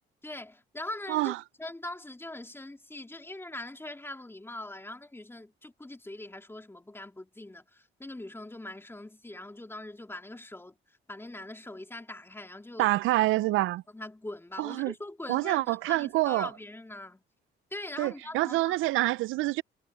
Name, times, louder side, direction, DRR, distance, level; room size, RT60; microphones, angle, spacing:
voice 1, 0.2-1.3 1.6-12.9 13.9-17.2 17.7-18.7, left 1 dB, 10° left, 3.3 m, -42 dB
voice 2, 12.8-13.8 14.6-14.9 15.3-16.5 18.0-19.6, right 18 dB, 85° right, 0.4 m, -26 dB
cardioid pair, 90°, 20 cm